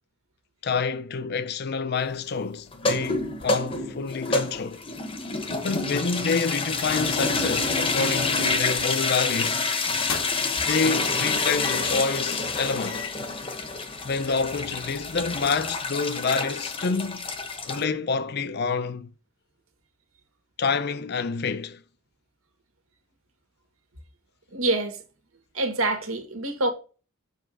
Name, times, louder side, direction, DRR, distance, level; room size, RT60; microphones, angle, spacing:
voice 1, 0.6-4.8 5.6-9.6 10.7-13.1 14.0-17.3 17.7-19.1 20.6-21.8, left 4 dB, 50° left, 0.5 m, -27 dB
sound 1, 2.7-17.8, left 3 dB, 25° left, 0.9 m, -28 dB
voice 2, 5.3-5.7 24.5-25.0 25.5-26.7, right 2 dB, 85° right, 1.8 m, -27 dB
sound 2, 8.3-8.7 9.0-9.2 9.8-10.6 11.6-12.0 12.5-12.6 12.9-13.3, left 7 dB, 70° left, 1.0 m, -36 dB
7.0 x 3.6 x 6.0 m
head